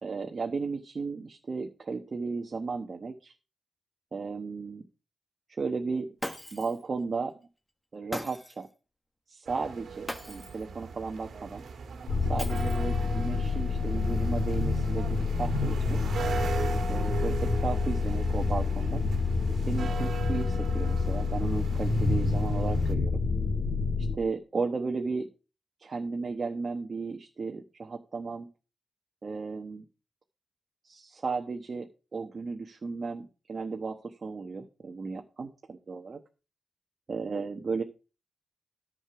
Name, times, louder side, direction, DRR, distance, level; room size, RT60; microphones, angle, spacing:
voice 1, 0.0-3.3 4.1-4.8 5.6-6.1 6.5-7.3 7.9-8.7 9.3-11.6 12.3-16.0 16.9-19.1 19.7-23.2 24.2-25.3 25.8-28.5 29.2-29.8 30.8-36.2 37.1-37.8, right 4 dB, 40° right, 3 dB, 1.1 m, -34 dB
Shatter, 6.2-6.8 8.1-8.7 10.1-10.7 12.4-13.0, equal, 5° left, 1.4 m, -39 dB
sound 1, 9.5-22.9, right 5 dB, 70° right, 1.8 m, -39 dB
sound 2, 12.1-24.2, left 4 dB, 65° left, 2.1 m, -28 dB
11.0 x 6.6 x 5.9 m, 0.33 s
wide cardioid pair, 115°, 0 cm